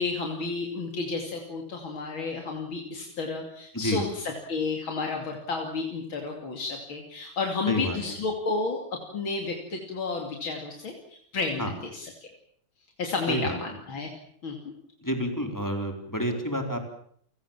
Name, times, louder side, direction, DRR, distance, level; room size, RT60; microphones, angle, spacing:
voice 1, 0.0-12.1 13.0-14.1 14.4-14.7, left 4 dB, 85° left, 2 dB, 3.6 m, -31 dB
voice 2, 3.7-4.1 7.7-8.0 11.6-11.7 13.3-13.6 15.0-16.8, equal, 10° left, 4 dB, 4.3 m, -29 dB
30.0 x 18.5 x 7.5 m, 0.64 s
omnidirectional pair, 2.2 m